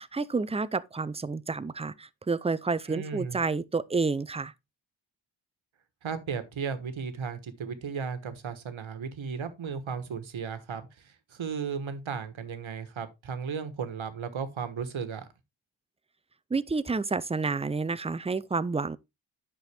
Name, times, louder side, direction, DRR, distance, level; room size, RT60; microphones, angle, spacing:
voice 1, 0.0-4.5 16.5-19.0, right 4 dB, 15° right, 0.4 m, -29 dB
voice 2, 2.9-3.4 6.0-15.3, right 6 dB, 80° right, 1.3 m, -35 dB
9.7 x 6.1 x 3.3 m
wide cardioid pair, 125°, 47 cm